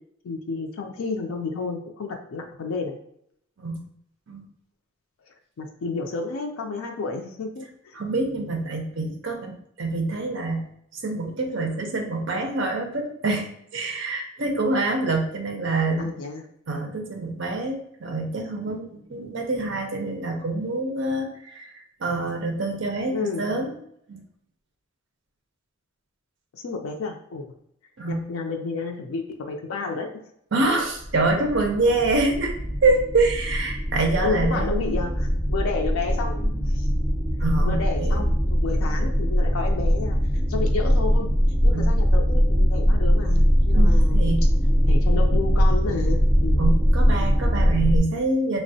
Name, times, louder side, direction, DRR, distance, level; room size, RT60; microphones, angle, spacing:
voice 1, 0.2-3.0 5.2-8.0 16.0-16.4 23.1-23.4 26.5-27.5 28.1-30.1 34.2-36.9 37.6-40.2 40.5-41.3 41.6-44.3 44.8-46.6, left 4 dB, 85° left, 2 dB, 0.4 m, -31 dB
voice 2, 7.9-10.6 11.0-16.1 16.7-23.7 24.1-24.2 28.0-28.3 30.5-35.0 37.4-38.3 40.6-40.7 41.7-41.9 43.7-44.5 46.6-48.6, right 2 dB, 65° right, 3 dB, 0.5 m, -26 dB
sound 1, 31.0-48.0, equal, 10° left, 0.4 m, -21 dB
3.5 x 2.0 x 2.6 m, 0.71 s
head